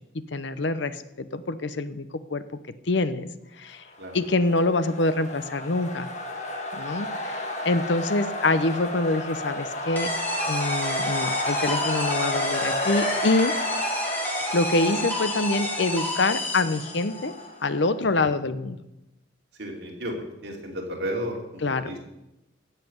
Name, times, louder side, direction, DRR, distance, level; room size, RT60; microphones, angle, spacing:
voice 1, 0.3-2.4 2.9-3.3 3.6-3.8 4.1-6.1 6.7-10.1 10.5-13.5 14.5-17.3 17.6-18.8 21.6-21.9, left 2 dB, 65° left, 13 dB, 0.7 m, -25 dB
sound 1, 4.0-17.8, left 1 dB, 35° left, 1.7 m, -32 dB
sound 2, 10.0-17.3, equal, 10° left, 1.8 m, -30 dB
voice 2, 19.6-22.0, equal, 60° right, -1 dB, 2.9 m, -33 dB
16.0 x 5.8 x 7.9 m, 0.91 s
head